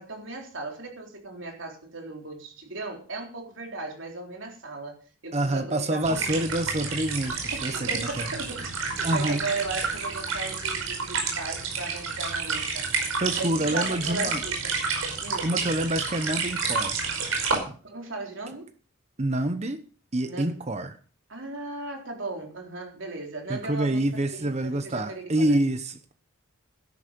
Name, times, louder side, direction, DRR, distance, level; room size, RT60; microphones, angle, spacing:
voice 1, 0.0-5.0 5.2-6.4 7.5-12.9 13.4-14.8 15.2-15.5 17.8-18.7 20.3-20.6 21.3-25.6, right 2 dB, 60° right, 3.9 m, -37 dB
voice 2, 5.3-8.3 9.0-9.4 13.2-14.4 15.4-17.0 17.4-17.8 19.2-19.8 20.1-21.0 23.5-26.1, right 1 dB, 30° right, 0.9 m, -27 dB
sound 1, 6.0-17.6, right 4 dB, 85° right, 5.2 m, -30 dB
12.5 x 11.5 x 5.3 m
head